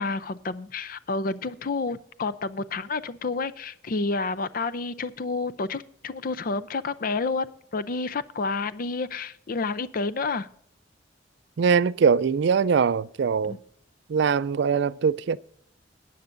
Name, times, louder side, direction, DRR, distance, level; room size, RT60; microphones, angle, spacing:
voice 1, 0.0-10.5 13.4-13.6, left 3 dB, 50° left, 0.5 m, -30 dB
voice 2, 11.6-13.6 14.1-15.4, right 6 dB, 65° right, 0.4 m, -22 dB
18.5 x 9.4 x 2.6 m
head